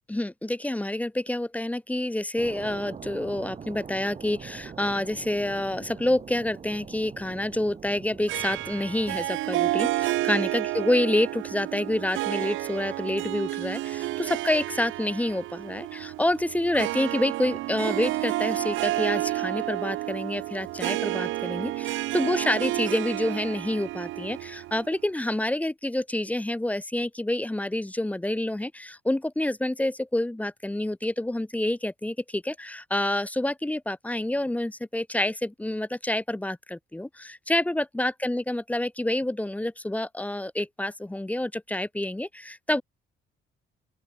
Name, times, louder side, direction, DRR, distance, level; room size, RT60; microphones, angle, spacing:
voice 1, 0.1-42.8, left 1 dB, 5° left, 0.6 m, -28 dB
sound 1, 2.4-9.2, right 6 dB, 35° right, 0.7 m, -43 dB
Harp, 8.3-25.0, right 17 dB, 80° right, 0.5 m, -30 dB
open air
cardioid pair, 90°, 20 cm